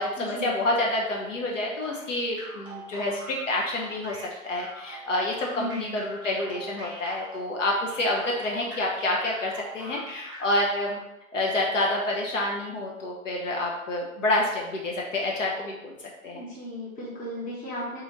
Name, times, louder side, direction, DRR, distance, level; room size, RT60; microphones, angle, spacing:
voice 1, 0.0-11.0 11.3-16.5, left 1 dB, 60° left, -2 dB, 0.8 m, -28 dB
sound 1, 1.8-11.0, right 2 dB, 10° right, 1.3 m, -43 dB
voice 2, 5.5-5.9 16.3-18.0, left 1 dB, 20° left, -5 dB, 1.1 m, -35 dB
3.8 x 3.1 x 3.0 m, 0.91 s
figure-of-eight pair, 115°, 42 cm